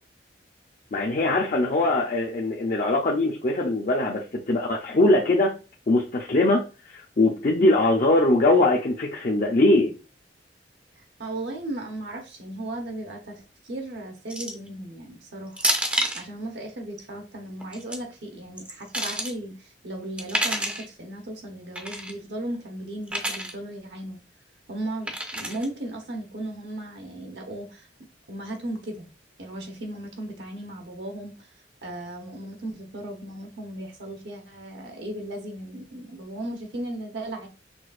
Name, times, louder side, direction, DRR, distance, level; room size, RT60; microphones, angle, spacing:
voice 1, 0.9-5.5 5.9-9.9, left 2 dB, 45° left, -1 dB, 0.5 m, -21 dB
voice 2, 11.0-15.6 16.1-24.2 24.7-27.9 28.3-29.1 29.4-31.5 31.8-37.5, right 1 dB, 75° right, 2 dB, 0.9 m, -36 dB
sound 1, 14.3-14.7 15.6-16.2 17.6-18.0 18.6-19.3 20.2-20.9 21.8-22.1 23.1-23.5 25.1-25.7, right 1 dB, 5° right, 0.5 m, -28 dB
6.0 x 2.4 x 2.4 m, 0.32 s
head